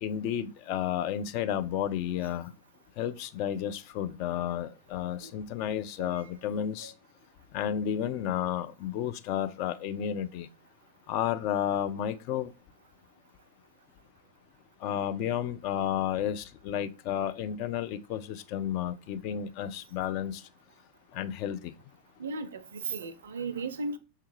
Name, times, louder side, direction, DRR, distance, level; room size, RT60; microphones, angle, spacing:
voice 1, 0.0-2.5 3.0-6.9 7.5-10.5 11.1-12.5 14.8-20.4 21.1-21.7, left 10 dB, 45° left, 0.3 m, -32 dB
voice 2, 22.2-24.0, right 4 dB, 65° right, 0.4 m, -36 dB
5.6 x 2.3 x 2.9 m
figure-of-eight pair, 90°, 0 cm